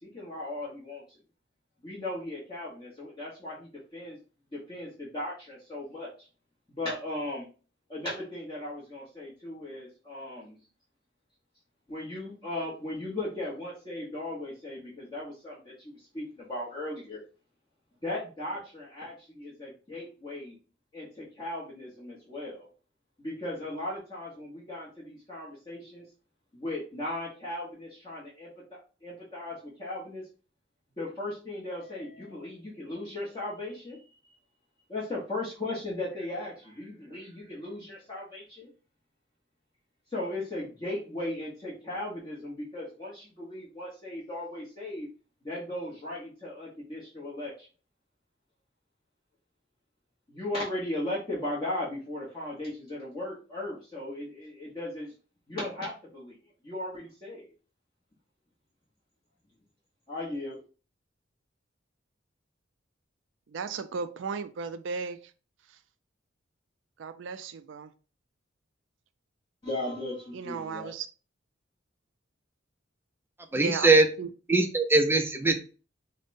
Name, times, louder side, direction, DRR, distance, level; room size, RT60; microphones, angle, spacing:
voice 1, 0.0-1.0 1.8-4.2 4.5-6.1 6.7-7.5 7.9-10.6 11.9-17.2 18.0-20.6 20.9-22.7 23.2-26.0 26.5-28.5 29.0-30.2 31.0-34.0 34.9-38.7 40.1-45.1 45.4-47.7 50.3-55.1 55.5-56.3 56.6-57.5 60.1-60.6 69.6-70.9, left 1 dB, 25° left, 1.0 m, -37 dB
voice 2, 63.5-65.2 67.0-67.9 70.3-71.1 73.5-74.3, right 5 dB, 75° right, 0.4 m, -35 dB
voice 3, 73.5-74.1 74.5-75.6, right 3 dB, 10° right, 0.5 m, -21 dB
5.0 x 2.1 x 2.6 m
head